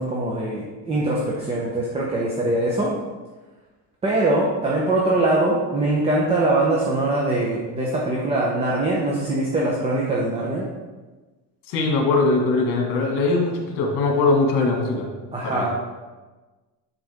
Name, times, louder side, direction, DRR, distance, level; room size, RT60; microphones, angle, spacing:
voice 1, 0.0-2.9 4.0-10.7 15.3-15.7, right 2 dB, 15° right, -4 dB, 0.8 m, -22 dB
voice 2, 11.7-15.1 15.4-15.7, left 3 dB, 75° left, 1 dB, 1.9 m, -21 dB
10.0 x 4.3 x 3.5 m, 1.2 s
cardioid pair, 165°, 38 cm